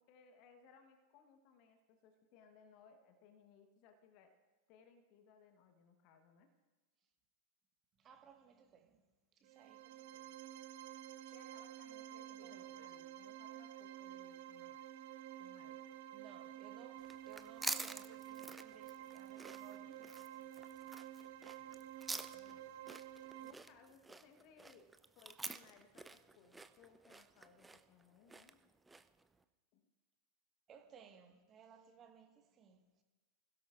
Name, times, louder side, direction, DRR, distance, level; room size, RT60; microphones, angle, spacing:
voice 1, 0.0-4.4 4.7-6.5 11.3-14.8 15.4-16.0 22.1-23.1 23.4-24.9 25.2-28.7 29.7-29.9, left 5 dB, 45° left, 1.2 m, -65 dB
voice 2, 8.0-9.0 9.4-10.3 11.2-11.3 12.3-12.6 16.1-20.2 30.7-32.8, right 6 dB, 30° right, 1.6 m, -61 dB
sound 1, 9.4-23.5, right 12 dB, 50° right, 0.8 m, -51 dB
sound 2, 17.0-29.2, right 3 dB, 10° right, 0.5 m, -48 dB
26.5 x 16.5 x 2.5 m
figure-of-eight pair, 90°, 0 cm